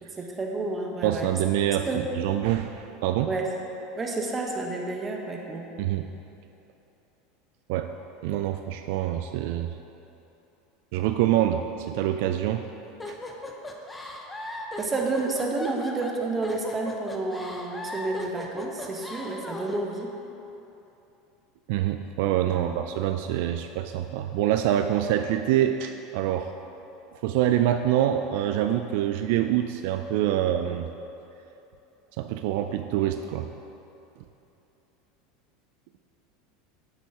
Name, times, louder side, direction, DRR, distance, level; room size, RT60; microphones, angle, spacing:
voice 1, 0.0-1.3 1.7-2.1 3.3-3.5 4.0-5.7 14.8-20.1 22.5-22.8, right 3 dB, 20° right, 1 dB, 1.1 m, -30 dB
voice 2, 1.0-1.9 2.2-3.3 5.8-6.1 7.7-7.9 8.2-9.7 10.9-12.6 21.7-26.5 27.2-30.9 32.2-33.5, right 11 dB, 70° right, 7 dB, 0.3 m, -25 dB
sound 1, 13.0-19.8, left 1 dB, 15° left, 0.8 m, -37 dB
9.6 x 8.2 x 3.0 m, 2.9 s
supercardioid pair, 115°, 0 cm